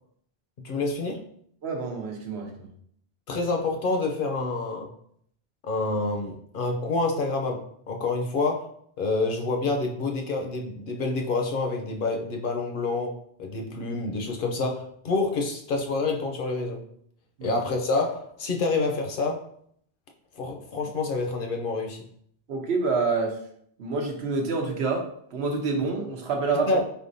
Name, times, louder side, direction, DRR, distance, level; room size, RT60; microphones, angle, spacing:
voice 1, 0.6-1.2 3.3-4.9 5.6-8.7 9.0-13.1 13.4-16.8 17.4-19.4 20.4-22.0 26.7-26.8, left 3 dB, 60° left, 2 dB, 0.7 m, -27 dB
voice 2, 1.6-2.7 17.4-17.5 22.5-23.4 23.8-26.7, right 4 dB, 85° right, 2 dB, 1.0 m, -27 dB
4.1 x 3.5 x 2.6 m, 0.66 s
omnidirectional pair, 1.1 m